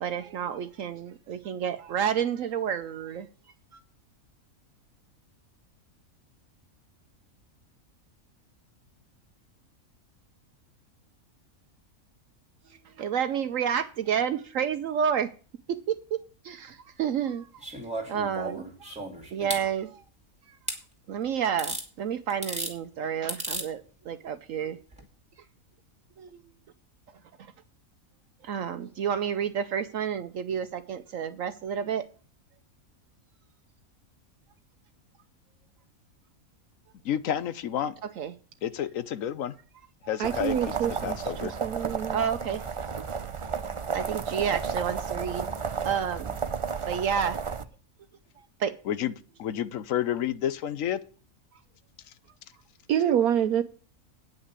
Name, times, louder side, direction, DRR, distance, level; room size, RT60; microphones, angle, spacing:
voice 1, 0.0-3.3 13.0-15.3 15.7-17.5 18.1-18.9 19.3-20.0 21.1-24.8 26.2-26.3 28.4-32.1 38.2-38.3 40.0-40.1 41.9-42.6 43.9-45.5 45.8-46.4 46.9-47.4 48.6-48.7, right 8 dB, 70° right, 1.0 m, -30 dB
sound 1, 17.6-19.6 20.7-20.8 21.6-21.9 22.3-22.7 23.3-23.7 24.9-25.0, right 1 dB, 5° right, 2.3 m, -34 dB
voice 2, 37.0-37.9 38.6-39.5 40.1-40.7 41.0-41.5 48.9-49.1 49.4-51.0, left 10 dB, 70° left, 1.1 m, -30 dB
sound 2, 40.2-47.6, right 5 dB, 40° right, 0.4 m, -33 dB
voice 3, 40.2-42.3 52.9-53.6, right 9 dB, 90° right, 1.2 m, -27 dB
9.2 x 5.9 x 8.2 m
omnidirectional pair, 1.5 m